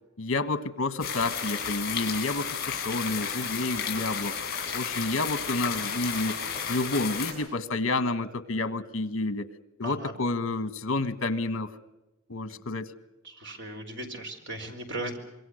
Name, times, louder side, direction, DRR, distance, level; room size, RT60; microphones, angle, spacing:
voice 1, 0.2-6.3 6.7-9.5 9.8-11.7 12.3-12.9, left 2 dB, 65° left, 13 dB, 1.5 m, -30 dB
sound 1, 1.0-7.3, left 7 dB, 45° left, 6.4 m, -32 dB
voice 2, 6.0-6.6 9.8-10.1 12.5-12.6 13.2-15.2, right 1 dB, 55° right, 5 dB, 4.4 m, -38 dB
26.5 x 23.0 x 6.5 m, 1.0 s
head